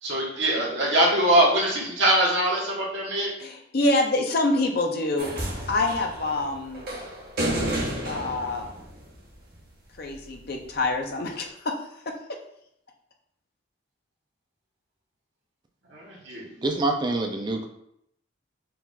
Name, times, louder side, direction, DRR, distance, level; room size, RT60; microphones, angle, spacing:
voice 1, 0.0-3.3 15.9-16.6, right 1 dB, 65° right, -2 dB, 1.2 m, -23 dB
voice 2, 3.4-5.3 5.7-6.9 8.1-8.7 10.0-11.7 12.1-12.2, left 2 dB, 50° left, 2 dB, 0.6 m, -26 dB
sound 1, 5.2-9.5 10.7-10.8, right 1 dB, 50° right, 0.9 m, -31 dB
voice 3, 16.6-17.7, right 2 dB, 20° right, 4 dB, 0.3 m, -26 dB
4.4 x 2.4 x 3.9 m, 0.74 s
head